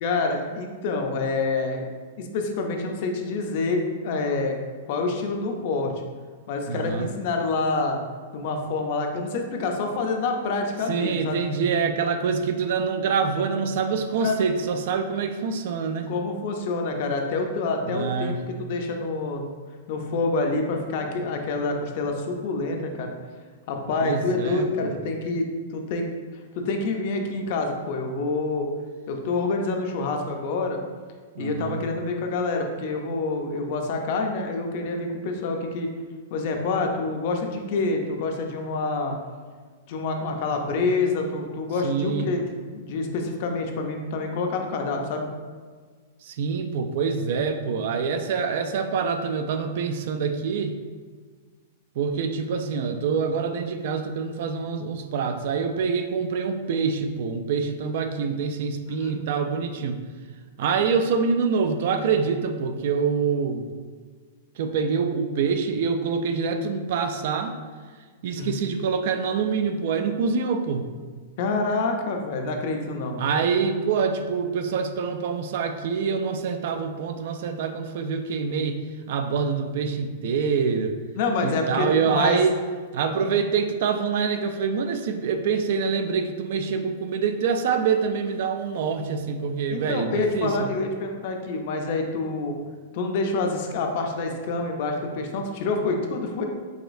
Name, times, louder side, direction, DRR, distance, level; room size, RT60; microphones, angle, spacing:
voice 1, 0.0-1.9 2.2-4.5 4.9-5.9 6.5-8.0 8.3-11.4 14.2-14.4 16.1-19.5 19.9-23.1 23.7-26.1 26.5-28.7 29.1-30.8 31.4-35.9 36.3-39.1 39.9-42.4 42.7-45.3 58.9-59.2 68.3-68.6 71.4-73.2 81.2-82.4 89.7-92.6 92.9-96.5, left 3 dB, 40° left, 3 dB, 0.5 m, -27 dB
voice 2, 6.7-7.1 10.9-16.1 17.9-18.4 24.0-24.9 31.3-31.9 41.8-42.3 46.2-50.8 52.0-60.0 60.6-63.6 64.6-67.6 68.2-70.9 73.2-81.0 81.4-82.6 82.9-90.7, right 5 dB, 45° right, 7 dB, 0.3 m, -25 dB
4.8 x 4.2 x 2.6 m, 1.5 s
supercardioid pair, 175°, 0 cm